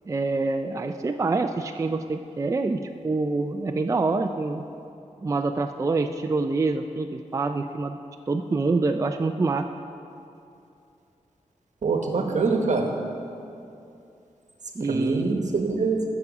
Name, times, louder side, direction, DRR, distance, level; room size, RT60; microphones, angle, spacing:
voice 1, 0.1-4.6 5.2-8.0 8.3-9.6 14.8-15.5, right 3 dB, 25° right, 6 dB, 0.3 m, -26 dB
voice 2, 11.8-12.9 14.9-16.0, right 4 dB, 70° right, 3 dB, 1.0 m, -24 dB
14.0 x 4.8 x 4.9 m, 2.6 s
wide cardioid pair, 85°, 13 cm